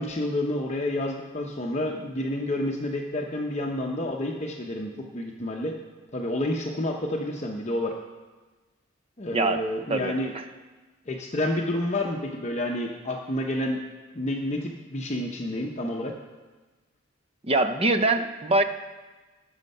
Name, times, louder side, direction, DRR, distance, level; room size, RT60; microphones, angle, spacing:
voice 1, 0.0-5.7 6.1-7.9 9.2-10.3 11.1-13.8 14.1-16.1, left 1 dB, 30° left, 1 dB, 0.7 m, -29 dB
voice 2, 9.3-9.6 9.9-10.4 17.4-18.6, right 2 dB, 25° right, 9 dB, 0.5 m, -24 dB
13.5 x 6.5 x 5.4 m, 1.3 s
head